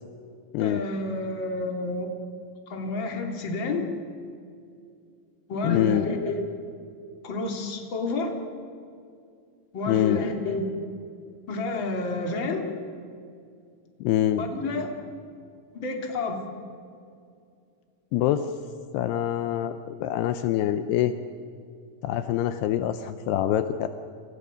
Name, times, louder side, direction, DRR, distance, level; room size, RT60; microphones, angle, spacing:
voice 1, 0.6-2.1 2.7-3.9 5.5-6.5 7.2-8.3 9.7-10.6 11.5-12.7 14.4-14.9 15.7-16.4, left 3 dB, 30° left, 2 dB, 2.9 m, -29 dB
voice 2, 5.6-6.0 9.9-10.2 14.0-14.4 18.1-18.5 18.9-21.1 22.0-23.9, left 12 dB, 80° left, 9 dB, 2.7 m, -25 dB
29.0 x 26.5 x 5.2 m, 2.4 s
omnidirectional pair, 4.9 m